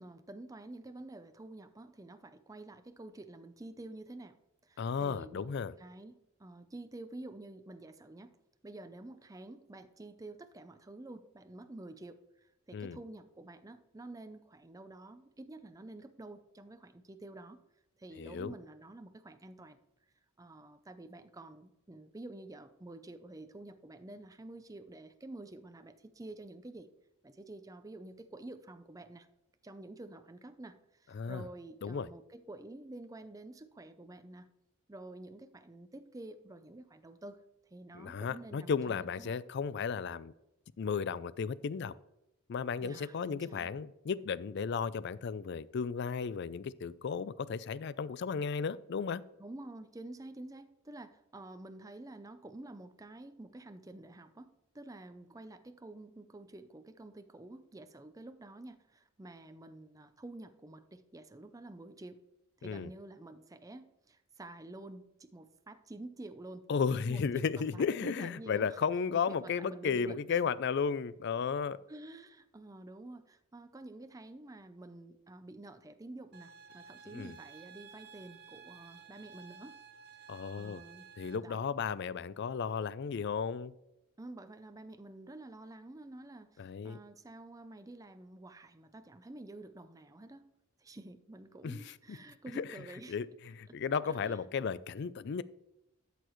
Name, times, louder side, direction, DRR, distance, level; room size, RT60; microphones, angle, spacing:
voice 1, 0.0-4.4 4.6-5.5 5.8-8.4 8.6-17.6 18.0-19.8 20.4-26.9 27.2-29.3 29.6-34.5 34.9-37.4 37.7-39.4 42.8-43.7 49.4-62.2 62.6-66.7 67.1-68.8 69.1-70.4 71.9-79.8 80.1-81.1 81.4-81.6 84.2-90.4 90.8-93.2 93.7-93.8 94.1-94.4, right 2 dB, 15° right, 0.5 m, -49 dB
voice 2, 4.8-5.7 12.7-13.0 18.2-18.5 31.1-31.4 31.8-32.1 37.9-40.3 40.8-41.9 42.5-49.2 62.6-62.9 66.7-71.8 77.1-77.3 80.3-80.8 81.2-83.7 86.6-87.0 91.6-91.8 92.6-92.7 93.1-95.4, left 6 dB, 60° left, 0.4 m, -34 dB
sound 1, 76.3-81.4, right 6 dB, 55° right, 1.0 m, -54 dB
12.0 x 6.8 x 3.1 m
head